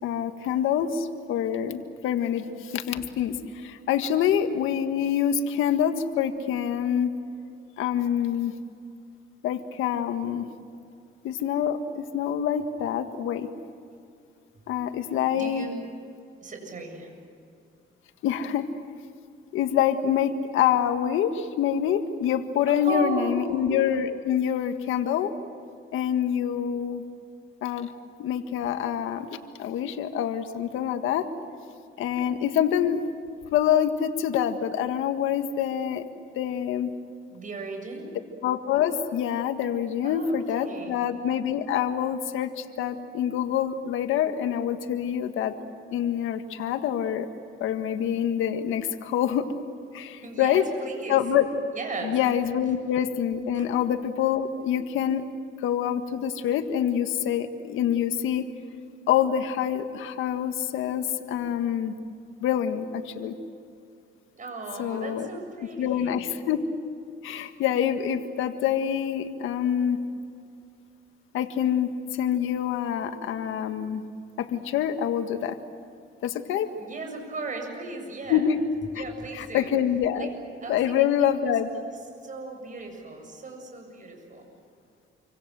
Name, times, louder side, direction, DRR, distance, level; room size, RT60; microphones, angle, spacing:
voice 1, 0.0-7.1 7.8-8.5 9.4-10.5 11.2-13.5 14.7-15.7 18.2-18.7 19.5-25.3 25.9-27.0 27.6-27.9 28.2-31.3 32.0-33.0 33.5-36.0 36.3-36.9 38.4-45.5 45.9-47.3 47.6-49.5 49.9-50.6 51.1-51.5 52.0-55.2 55.6-58.4 59.1-62.0 62.4-63.4 64.8-65.3 65.8-66.6 67.2-70.0 71.3-74.0 74.4-75.6 76.2-76.7 78.3-78.6 78.9-79.0 79.3-80.3 80.7-81.7, left 9 dB, 90° left, 8 dB, 1.7 m, -26 dB
voice 2, 15.3-15.8 16.4-17.1 22.7-23.7 37.3-38.1 40.0-41.0 50.2-51.2 51.7-52.2 53.5-53.6 64.3-66.2 76.8-78.4 78.9-79.7 80.1-80.3 80.6-81.8 82.2-84.5, right 3 dB, 40° right, 3 dB, 7.6 m, -36 dB
28.0 x 25.0 x 7.7 m, 2.4 s
cardioid pair, 90°, 20 cm